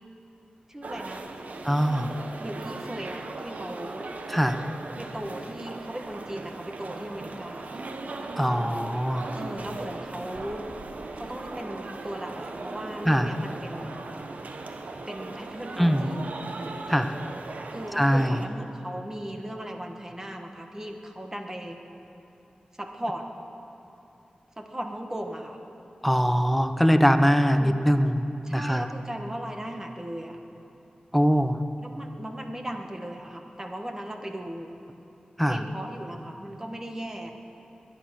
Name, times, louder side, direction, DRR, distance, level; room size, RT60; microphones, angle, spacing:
voice 1, 0.7-1.2 2.4-4.1 5.0-7.9 9.3-10.7 11.2-14.0 15.1-16.5 17.7-21.8 22.8-23.2 24.6-25.6 27.6-27.8 28.4-30.4 31.8-34.7 35.5-37.3, right 1 dB, 20° right, 3 dB, 1.4 m, -37 dB
sound 1, 0.8-18.5, right 3 dB, 65° right, 0.9 m, -38 dB
voice 2, 1.6-2.1 4.3-4.6 8.4-9.3 13.1-13.3 15.8-16.1 16.9-17.1 18.0-18.4 26.0-28.9 31.1-31.6 35.4-35.6, equal, ahead, 8 dB, 0.7 m, -22 dB
21.5 x 10.5 x 6.4 m, 2.9 s
wide cardioid pair, 100°, 3 cm